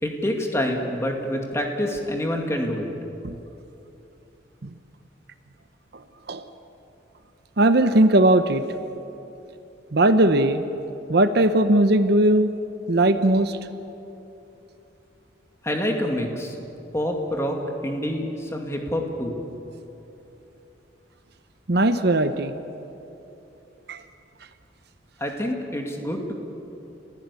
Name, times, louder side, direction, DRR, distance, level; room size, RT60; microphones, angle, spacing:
voice 1, 0.0-2.9 15.6-16.6 16.9-19.4 25.2-26.3, equal, 15° left, 2 dB, 2.3 m, -27 dB
voice 2, 7.6-8.6 9.9-10.6 11.1-12.5 12.9-13.6 21.7-22.5 23.9-24.0, right 1 dB, 55° right, 10 dB, 0.8 m, -18 dB
29.5 x 15.5 x 8.4 m, 2.9 s
head